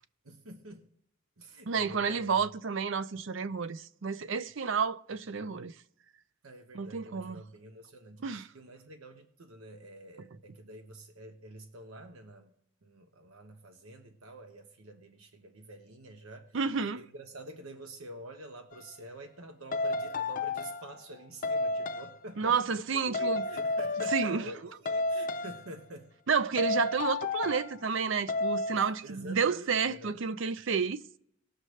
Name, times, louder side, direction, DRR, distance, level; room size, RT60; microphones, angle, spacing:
voice 1, 0.2-0.9 1.4-2.2 6.4-12.5 12.8-16.6 16.9-26.1 28.7-30.2, right 1 dB, 90° right, 1.1 m, -48 dB
voice 2, 1.7-5.7 6.7-7.4 8.2-8.5 16.5-17.0 22.4-23.4 24.1-24.5 26.3-31.0, right 5 dB, 60° right, 0.5 m, -30 dB
sound 1, 18.7-18.9 19.7-21.0 21.4-22.2 23.1-24.6 24.9-25.8 26.6-27.8 28.3-28.9, left 2 dB, 40° left, 0.4 m, -32 dB
19.5 x 6.5 x 3.2 m
head